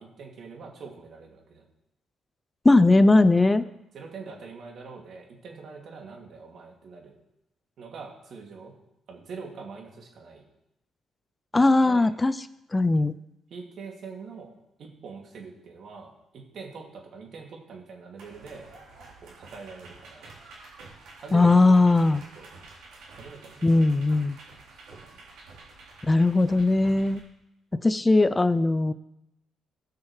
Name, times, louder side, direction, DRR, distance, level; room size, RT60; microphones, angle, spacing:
voice 1, 0.0-1.7 3.6-3.7 3.9-7.1 7.8-8.7 9.1-10.5 11.5-12.1 13.5-14.5 14.8-18.7 19.2-20.3 21.2-22.1 22.4-22.5 23.1-23.6 24.9-25.2 27.7-27.9, right 4 dB, 65° right, 0 dB, 2.4 m, -44 dB
voice 2, 2.6-3.6 11.5-12.3 12.7-13.1 21.3-22.2 23.6-24.4 26.1-27.2 27.8-28.9, left 2 dB, 20° left, 14 dB, 0.4 m, -19 dB
sound 1, 18.2-27.2, right 3 dB, 85° right, 3.7 m, -48 dB
18.0 x 6.2 x 3.2 m, 0.85 s
cardioid pair, 90°, 0 cm